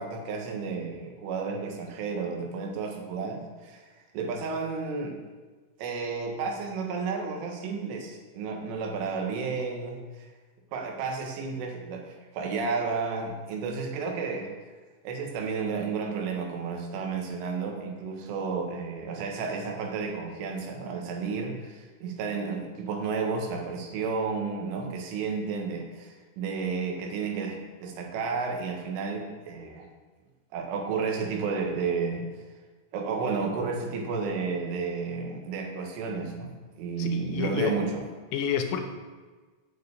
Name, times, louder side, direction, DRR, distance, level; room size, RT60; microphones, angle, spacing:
voice 1, 0.0-3.9 4.1-5.2 5.8-10.3 10.7-14.5 15.0-27.6 27.8-29.9 30.5-32.3 32.9-36.5 36.8-38.0, right 5 dB, 80° right, 1 dB, 4.1 m, -32 dB
voice 2, 37.0-37.7 38.3-38.8, left 8 dB, 85° left, 5 dB, 3.5 m, -29 dB
9.4 x 7.1 x 8.2 m, 1.3 s
omnidirectional pair, 5.6 m